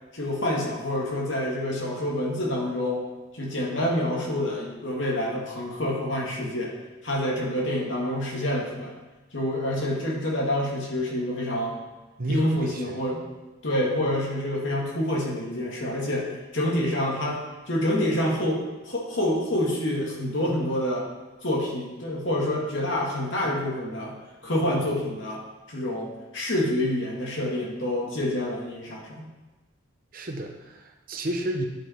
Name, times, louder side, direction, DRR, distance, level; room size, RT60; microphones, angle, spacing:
voice 1, 0.1-3.0 3.3-6.7 7.0-8.9 9.3-11.8 12.3-13.2 13.6-18.6 18.9-21.1 21.4-24.2 24.4-25.4 25.7-29.3, left 1 dB, 70° left, -3 dB, 2.0 m, -27 dB
voice 2, 12.2-13.0 30.1-31.6, right 1 dB, 45° right, 3 dB, 0.8 m, -31 dB
10.0 x 5.1 x 4.4 m, 1.2 s
head